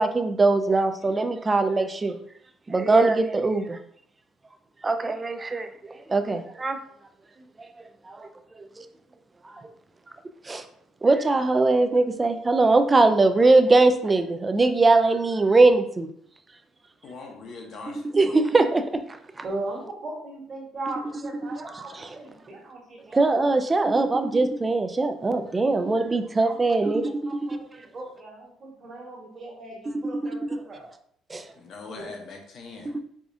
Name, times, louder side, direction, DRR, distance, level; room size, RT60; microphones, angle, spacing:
voice 1, 0.0-2.2 2.7-3.8 4.8-6.8 8.1-8.3 8.6-8.8 10.5-10.6 11.0-16.1 18.1-18.8 23.1-27.1 31.3-31.5 32.9-33.0, right 3 dB, 20° right, 7 dB, 0.3 m, -21 dB
voice 2, 17.0-18.0 31.5-32.9, left 3 dB, 55° left, 2 dB, 0.8 m, -41 dB
voice 3, 19.4-23.4 26.2-30.9 31.9-32.1, right 2 dB, 35° right, -3 dB, 1.4 m, -38 dB
4.8 x 2.4 x 2.6 m, 0.65 s
cardioid pair, 130°, 0 cm